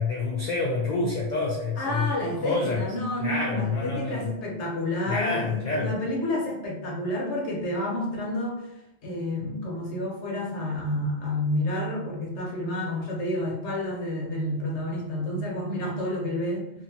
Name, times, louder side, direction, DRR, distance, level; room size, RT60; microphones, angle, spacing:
voice 1, 0.0-2.1 2.4-2.9 3.2-4.3 5.1-5.9, left 3 dB, 55° left, -3 dB, 0.5 m, -27 dB
voice 2, 1.8-8.7 9.0-16.7, left 1 dB, 85° left, -2 dB, 1.2 m, -30 dB
2.8 x 2.5 x 2.7 m, 0.85 s
omnidirectional pair, 1.2 m